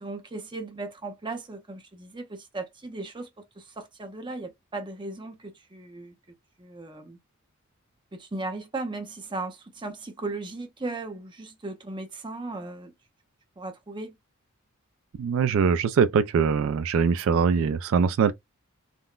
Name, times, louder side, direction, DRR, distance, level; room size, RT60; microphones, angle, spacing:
voice 1, 0.0-6.1 6.6-7.2 8.1-12.9 13.6-14.2, right 2 dB, 20° right, 0.6 m, -37 dB
voice 2, 15.2-18.3, right 6 dB, 65° right, 0.3 m, -22 dB
3.6 x 2.1 x 2.3 m
head